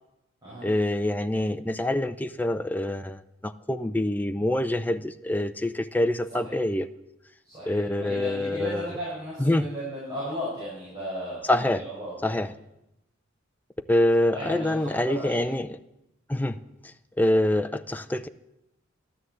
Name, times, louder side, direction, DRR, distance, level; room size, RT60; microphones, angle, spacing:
voice 1, 0.6-6.9 7.7-8.9 9.4-9.7 11.4-11.8 12.2-12.5 13.9-15.7 16.3-18.3, left 1 dB, 10° left, 9 dB, 0.4 m, -26 dB
voice 2, 7.4-12.4 14.3-15.5, equal, 20° right, -8 dB, 6.1 m, -35 dB
13.0 x 12.5 x 8.0 m, 0.89 s
head